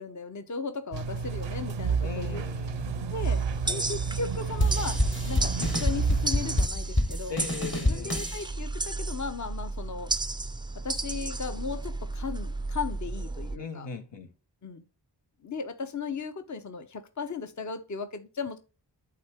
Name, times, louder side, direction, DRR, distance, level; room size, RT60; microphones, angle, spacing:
voice 1, 0.0-2.4 3.1-7.4 7.7-10.1 10.8-13.9 14.6-14.8 15.4-18.6, left 4 dB, 40° left, 0.8 m, -36 dB
sound 1, 0.9-6.7, right 5 dB, 85° right, 0.6 m, -30 dB
voice 2, 2.0-3.1 3.6-3.9 7.3-8.2 13.6-14.3, left 4 dB, 80° left, 1.2 m, -39 dB
sound 2, 3.2-13.6, right 2 dB, 10° right, 0.4 m, -34 dB
sound 3, 4.6-8.4, left 1 dB, 25° left, 1.2 m, -27 dB
8.6 x 3.6 x 3.4 m
cardioid pair, 45°, 43 cm